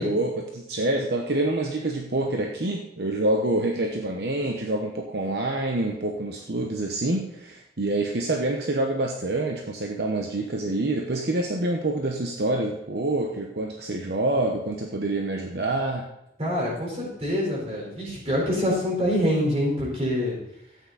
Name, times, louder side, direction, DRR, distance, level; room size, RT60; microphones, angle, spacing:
voice 1, 0.0-16.1, right 2 dB, 70° right, 2 dB, 0.9 m, -27 dB
voice 2, 16.4-20.4, equal, 35° right, -4 dB, 4.3 m, -25 dB
13.0 x 8.9 x 4.1 m, 0.82 s
head